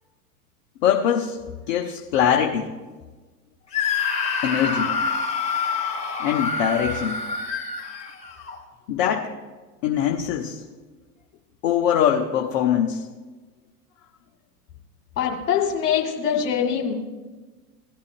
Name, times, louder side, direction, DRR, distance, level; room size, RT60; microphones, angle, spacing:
voice 1, 0.8-2.7 4.4-4.9 6.2-7.2 8.9-9.3 9.8-10.6 11.6-13.0, left 9 dB, 40° left, 1 dB, 1.1 m, -22 dB
Screaming, 3.7-8.6, left 5 dB, 15° left, 2.3 m, -27 dB
voice 2, 15.2-16.9, left 8 dB, 60° left, 0 dB, 1.9 m, -23 dB
18.0 x 11.5 x 2.5 m, 1.3 s
figure-of-eight pair, 95°, 47 cm